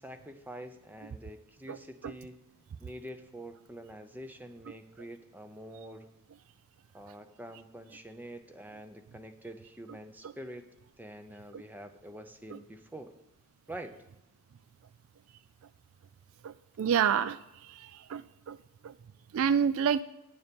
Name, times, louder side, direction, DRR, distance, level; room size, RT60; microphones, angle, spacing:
voice 1, 0.0-2.4 2.8-6.1 6.9-10.7 11.0-13.1 13.7-13.9, right 1 dB, 10° right, 8 dB, 0.6 m, -46 dB
voice 2, 16.4-17.4 18.1-18.6 18.8-18.9 19.3-20.0, right 7 dB, 70° right, 15 dB, 0.3 m, -28 dB
9.5 x 7.0 x 5.2 m, 0.93 s
head